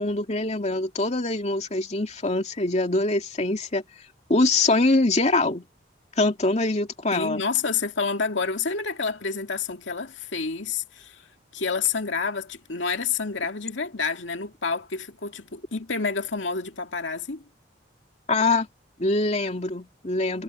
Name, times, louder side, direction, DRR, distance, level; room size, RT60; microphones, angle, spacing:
voice 1, 0.0-3.8 4.3-5.7 6.2-7.4 18.3-18.7 19.0-20.4, left 2 dB, 35° left, 2.5 m, -23 dB
voice 2, 7.1-11.3 11.5-17.4, left 5 dB, 80° left, 2.2 m, -29 dB
head